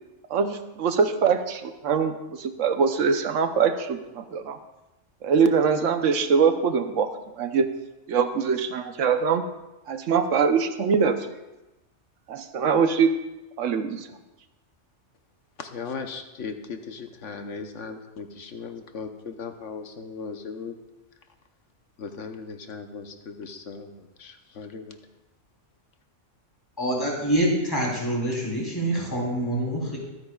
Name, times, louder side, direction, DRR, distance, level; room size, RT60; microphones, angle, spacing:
voice 1, 0.3-4.6 5.2-7.1 7.4-7.7 8.1-9.4 9.9-11.3 12.3-13.1 13.6-14.1, right 6 dB, 90° right, 8 dB, 1.2 m, -23 dB
voice 2, 15.6-20.7 22.0-25.0, left 5 dB, 80° left, 6 dB, 1.2 m, -37 dB
voice 3, 26.8-30.0, right 1 dB, 20° left, -4 dB, 3.5 m, -26 dB
23.5 x 9.4 x 2.4 m, 1.0 s
omnidirectional pair, 1.2 m